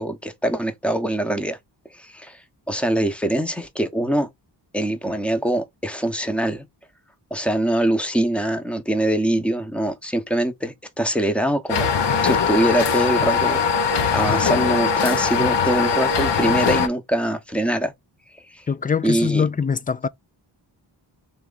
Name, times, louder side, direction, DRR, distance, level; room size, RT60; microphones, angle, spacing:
voice 1, 0.0-1.6 1.9-2.4 2.7-4.3 4.7-6.7 7.3-11.9 12.2-17.9 18.5-18.6 19.0-19.4, right 1 dB, 5° left, 0.9 m, -23 dB
sound 1, 11.7-16.9, left 6 dB, 65° left, 0.8 m, -21 dB
voice 2, 18.7-20.1, left 6 dB, 20° left, 0.3 m, -23 dB
3.5 x 3.0 x 3.8 m
cardioid pair, 75°, 45 cm